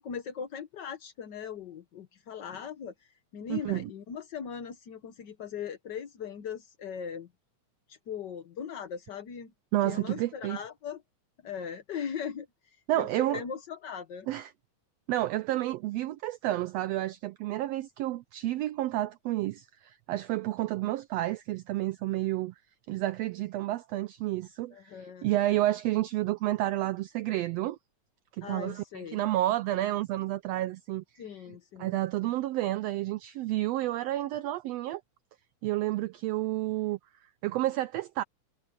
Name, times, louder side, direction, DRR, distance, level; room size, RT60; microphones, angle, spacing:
voice 1, 0.0-2.9 3.3-7.3 7.9-9.5 9.8-11.0 11.4-14.3 24.7-25.3 28.4-29.2 31.2-32.0, left 7 dB, 60° left, 1.1 m, -39 dB
voice 2, 3.5-3.9 9.7-10.6 12.9-13.4 14.3-14.5 15.1-22.5 22.9-27.8 28.3-35.0 35.6-37.0 37.4-38.2, right 15 dB, 85° right, 1.4 m, -30 dB
omnidirectional pair, 3.4 m